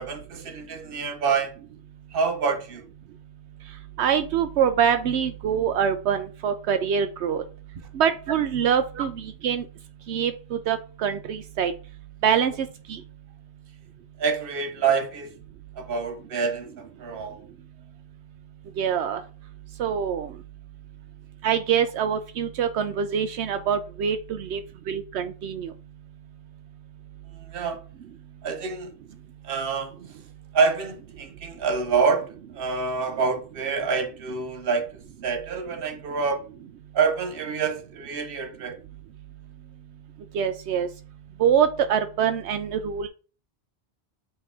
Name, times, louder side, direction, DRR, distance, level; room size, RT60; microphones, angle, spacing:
voice 1, 0.0-1.5 2.1-2.8 9.0-9.1 14.2-15.3 15.8-17.4 27.3-27.8 28.4-28.9 29.4-29.9 30.5-32.3 32.5-34.9 35.2-36.4 36.9-38.8, right 5 dB, 60° right, 1.1 m, -26 dB
voice 2, 4.0-7.4 7.9-9.7 10.1-11.7 12.2-13.0 18.8-19.2 19.8-20.3 21.4-24.6 24.9-25.7 40.3-40.9 41.4-43.1, right 8 dB, 85° right, 0.9 m, -24 dB
8.1 x 3.2 x 3.6 m
omnidirectional pair, 1.1 m